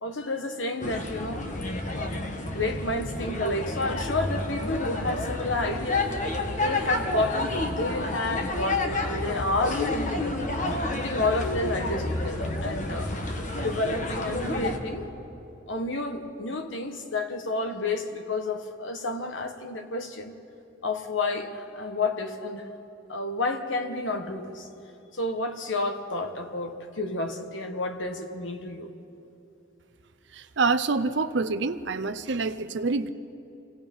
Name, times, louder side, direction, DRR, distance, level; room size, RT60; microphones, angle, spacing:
voice 1, 0.0-1.4 1.9-2.2 2.4-6.1 6.6-10.5 10.9-13.1 13.6-15.1 15.7-20.3 20.8-22.7 23.1-24.7 25.1-28.9, left 2 dB, 80° left, 6 dB, 1.4 m, -30 dB
sound 1, 0.8-14.8, left 2 dB, 40° left, 1.4 m, -30 dB
voice 2, 30.3-33.1, right 4 dB, 65° right, 10 dB, 0.7 m, -26 dB
27.0 x 17.5 x 5.5 m, 2.8 s
head